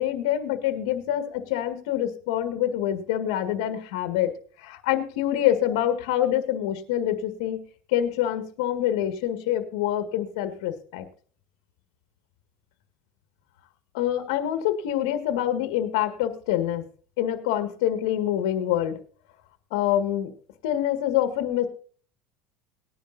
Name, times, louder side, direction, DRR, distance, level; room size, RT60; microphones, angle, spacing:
voice 1, 0.0-4.3 4.6-7.6 7.9-11.1 13.9-16.8 17.2-19.0 19.7-20.3 20.6-21.7, left 11 dB, 85° left, 8 dB, 1.9 m, -26 dB
19.5 x 10.5 x 2.7 m, 0.43 s
cardioid pair, 140°, 3 cm